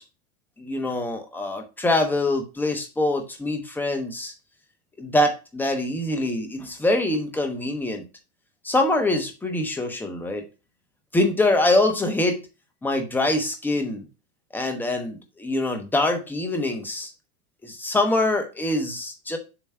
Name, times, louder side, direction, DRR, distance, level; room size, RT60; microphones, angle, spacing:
voice 1, 0.6-4.3 5.0-8.0 8.6-10.4 11.1-12.4 12.8-14.0 14.5-17.1 17.6-19.4, left 2 dB, 5° left, 0.9 m, -24 dB
7.3 x 3.0 x 5.7 m
supercardioid pair, 145°, 46 cm